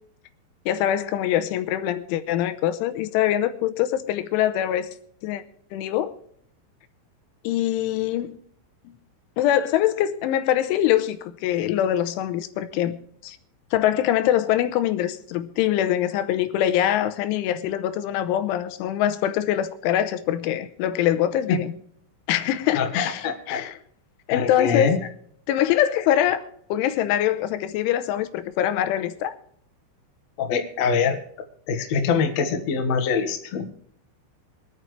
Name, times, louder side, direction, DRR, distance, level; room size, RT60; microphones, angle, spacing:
voice 1, 0.7-4.9 5.2-5.4 5.7-6.1 7.4-8.4 9.4-13.0 13.2-13.4 13.7-21.7 22.3-23.8 24.3-25.1 25.5-29.4, left 11 dB, 85° left, 3.3 m, -23 dB
voice 2, 22.7-23.6 24.3-25.0 30.4-31.2 31.7-33.7, left 5 dB, 65° left, 1.6 m, -24 dB
24.5 x 9.4 x 3.2 m
omnidirectional pair, 5.6 m